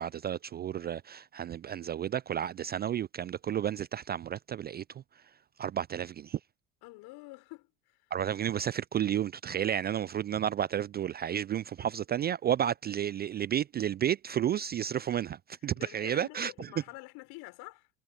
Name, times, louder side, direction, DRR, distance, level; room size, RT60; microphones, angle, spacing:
voice 1, 0.0-5.0 5.6-6.4 8.1-16.7, right 10 dB, 25° right, 0.4 m, -32 dB
voice 2, 6.8-8.1 15.7-17.9, left 23 dB, 60° left, 5.5 m, -47 dB
hypercardioid pair, 75°, 41 cm